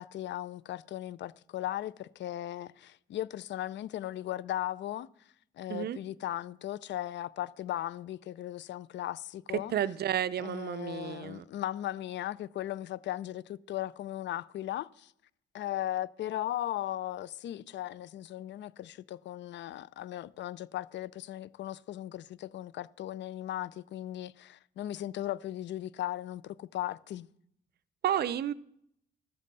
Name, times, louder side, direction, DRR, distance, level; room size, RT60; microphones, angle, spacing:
voice 1, 0.0-5.1 5.6-9.7 10.4-15.1 15.5-27.3, left 13 dB, 65° left, 0.4 m, -37 dB
voice 2, 9.5-11.4 28.0-28.5, right 10 dB, 55° right, 0.5 m, -31 dB
13.0 x 7.4 x 4.1 m
cardioid pair, 90°, 20 cm